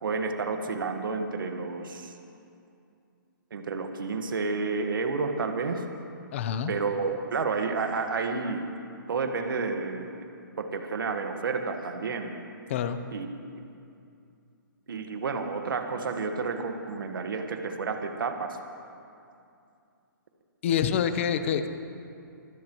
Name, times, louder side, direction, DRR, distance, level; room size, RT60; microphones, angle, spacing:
voice 1, 0.0-2.1 3.5-5.8 6.7-8.7 9.1-10.1 10.6-12.3 13.1-13.3 14.9-18.6, right 4 dB, 75° right, 5 dB, 1.5 m, -30 dB
voice 2, 6.3-6.7 12.7-13.0 20.6-21.7, left 8 dB, 35° left, 10 dB, 0.8 m, -26 dB
24.5 x 15.5 x 3.1 m, 2.5 s
hypercardioid pair, 165°, 11 cm